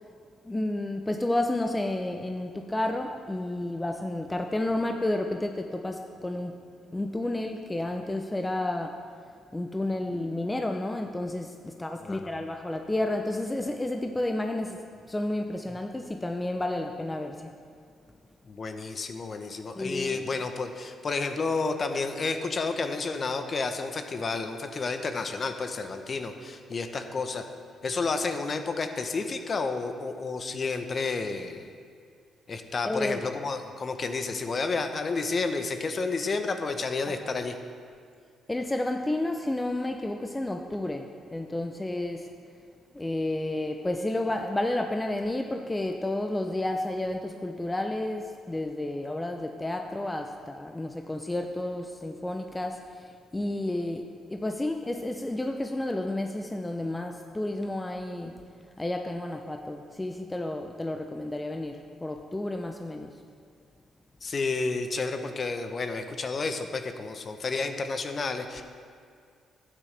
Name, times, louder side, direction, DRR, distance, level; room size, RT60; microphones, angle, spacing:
voice 1, 0.5-6.6 6.9-9.0 9.5-14.8 15.1-17.5 19.8-20.2 32.8-33.2 37.1-37.2 38.5-42.3 42.9-58.4 58.8-63.1, left 1 dB, 15° left, 4 dB, 0.6 m, -31 dB
voice 2, 12.0-12.4 18.4-27.4 27.8-31.7 32.5-37.6 64.2-68.6, left 4 dB, 40° left, 7 dB, 0.8 m, -31 dB
12.0 x 9.1 x 3.4 m, 2.2 s
cardioid pair, 90°, 0 cm